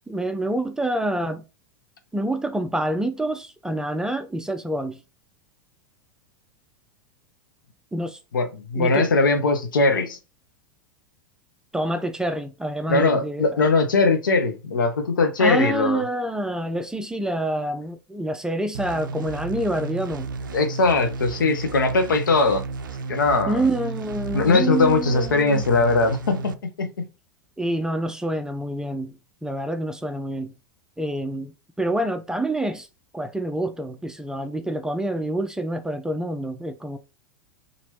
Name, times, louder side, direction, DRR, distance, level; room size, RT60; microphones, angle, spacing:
voice 1, 0.1-1.4 2.1-5.0 7.9-8.2 8.8-9.1 11.7-13.6 15.4-20.3 23.5-25.6 27.6-30.5 31.0-32.9 33.1-37.0, right 1 dB, 5° right, 0.4 m, -27 dB
voice 2, 8.3-10.2 12.9-16.0 20.5-22.6 23.1-23.6 24.3-27.1, left 3 dB, 75° left, 0.7 m, -20 dB
sound 1, 18.7-26.5, right 4 dB, 75° right, 0.4 m, -33 dB
2.9 x 2.5 x 3.1 m
figure-of-eight pair, 90°, 11 cm